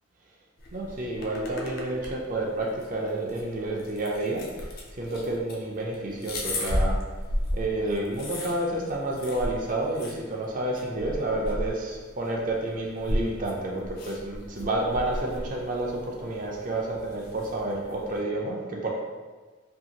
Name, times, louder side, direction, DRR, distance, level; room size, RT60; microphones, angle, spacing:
sound 1, 0.6-18.2, left 1 dB, 45° left, 0.4 m, -35 dB
voice 1, 0.7-7.0 7.5-18.9, right 2 dB, 40° right, -1 dB, 0.4 m, -30 dB
2.7 x 2.4 x 2.8 m, 1.3 s
head